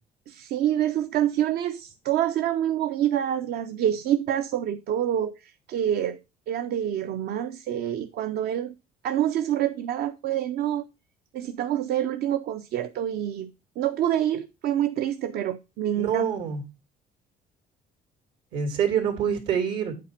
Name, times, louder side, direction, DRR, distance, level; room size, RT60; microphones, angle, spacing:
voice 1, 0.3-6.2 6.5-8.7 9.0-10.8 11.3-13.5 13.8-16.3, right 11 dB, 70° right, 0.6 m, -27 dB
voice 2, 16.0-16.6 18.5-19.9, right 8 dB, 85° right, 2.6 m, -26 dB
8.5 x 4.3 x 5.8 m
cardioid pair, 110°, 17 cm